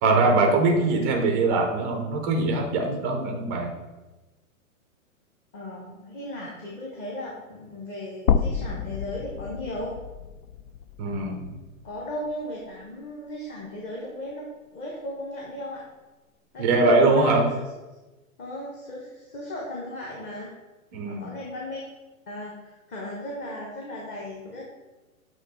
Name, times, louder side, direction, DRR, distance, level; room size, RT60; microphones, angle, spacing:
voice 1, 0.0-3.7 11.0-11.5 16.6-17.4 20.9-21.4, right 3 dB, 15° right, 2 dB, 0.3 m, -22 dB
voice 2, 0.7-1.1 5.5-10.0 11.8-15.8 16.5-17.4 18.4-20.5 21.1-21.8 22.3-24.6, left 1 dB, 25° left, -3 dB, 1.0 m, -36 dB
sound 1, 8.3-12.4 12.8-12.9 14.3-14.4, left 7 dB, 85° left, 0.5 m, -29 dB
7.7 x 3.1 x 4.0 m, 1.1 s
hypercardioid pair, 130°, 42 cm